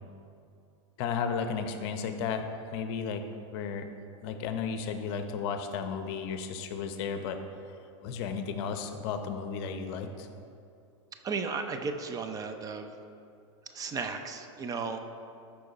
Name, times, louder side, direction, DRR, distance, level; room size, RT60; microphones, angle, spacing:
voice 1, 1.0-2.5 2.7-3.3 3.5-3.9 4.2-7.4 8.0-10.3, left 6 dB, 55° left, 7 dB, 0.8 m, -33 dB
voice 2, 11.2-12.9 13.7-15.0, right 4 dB, 20° right, 6 dB, 0.5 m, -34 dB
12.5 x 4.8 x 4.1 m, 2.5 s
hypercardioid pair, 125°, 16 cm